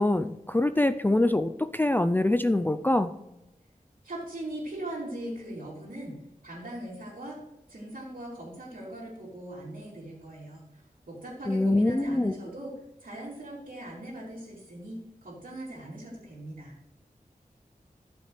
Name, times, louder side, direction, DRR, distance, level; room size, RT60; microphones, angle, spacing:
voice 1, 0.0-3.1 11.5-12.3, left 1 dB, 15° left, 9 dB, 0.4 m, -24 dB
voice 2, 4.0-7.4 7.7-12.7 13.0-16.7, right 1 dB, 75° right, -7 dB, 2.9 m, -40 dB
14.0 x 6.5 x 3.2 m, 0.94 s
wide cardioid pair, 70°, 15 cm